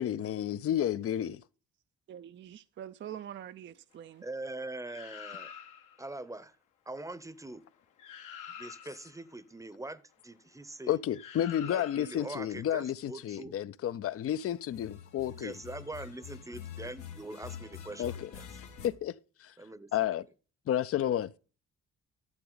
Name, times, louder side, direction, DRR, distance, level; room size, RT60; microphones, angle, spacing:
voice 1, 0.0-1.4 10.9-15.5 18.0-18.3 18.8-19.1 19.4-19.5 19.9-20.3 20.7-21.3, left 11 dB, 50° left, 0.5 m, -31 dB
voice 2, 2.1-4.2, right 10 dB, 40° right, 0.4 m, -44 dB
voice 3, 4.2-5.5 6.0-6.5 6.9-7.6 8.6-11.0 11.6-13.5 15.3-18.5 19.6-19.9, right 2 dB, 10° right, 0.7 m, -43 dB
sound 1, 4.8-6.0 7.7-7.8 8.0-9.1 11.1-12.3 14.6-18.9, left 9 dB, 85° left, 1.4 m, -46 dB
12.5 x 6.9 x 3.9 m
cardioid pair, 90°, 30 cm